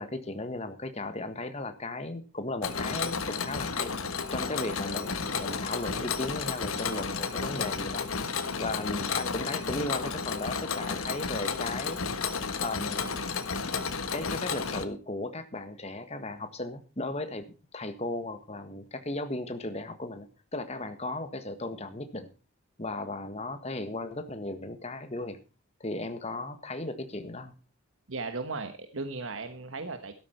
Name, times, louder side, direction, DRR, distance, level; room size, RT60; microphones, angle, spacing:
voice 1, 0.0-3.9 4.3-8.1 8.6-12.1 12.6-13.1 14.1-22.3 22.8-25.4 25.8-27.5, left 2 dB, 30° left, 9 dB, 1.5 m, -36 dB
Mechanisms, 2.6-14.8, left 5 dB, 90° left, 1.4 m, -32 dB
voice 2, 28.1-30.1, right 3 dB, 70° right, 8 dB, 1.3 m, -36 dB
13.0 x 12.5 x 4.4 m, 0.32 s
head